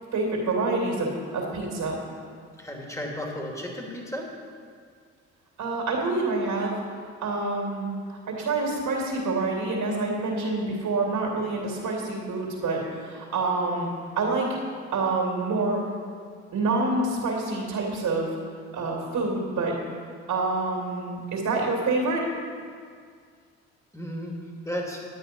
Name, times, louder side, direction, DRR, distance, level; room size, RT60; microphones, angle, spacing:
voice 1, 0.1-2.0 5.6-6.8 7.2-13.9 14.2-14.6 14.9-15.8 16.5-18.3 18.7-19.8 20.3-22.3, right 3 dB, 60° right, -1 dB, 2.8 m, -27 dB
voice 2, 2.6-4.2 23.9-25.0, equal, 10° left, -1 dB, 2.7 m, -34 dB
11.0 x 8.5 x 5.4 m, 2.1 s
hypercardioid pair, 50°, 34 cm